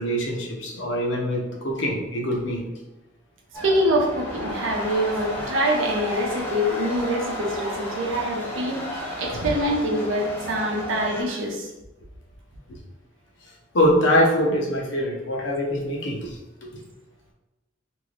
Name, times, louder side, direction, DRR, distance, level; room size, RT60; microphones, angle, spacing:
voice 1, 0.0-2.6 12.7-12.8 13.7-16.4, equal, 65° left, -1 dB, 0.7 m, -23 dB
sound 1, 3.5-11.2, equal, 10° left, 0.8 m, -33 dB
voice 2, 3.6-8.8 9.2-11.7, equal, 75° right, -1 dB, 0.7 m, -25 dB
2.9 x 2.6 x 3.1 m, 1.1 s
head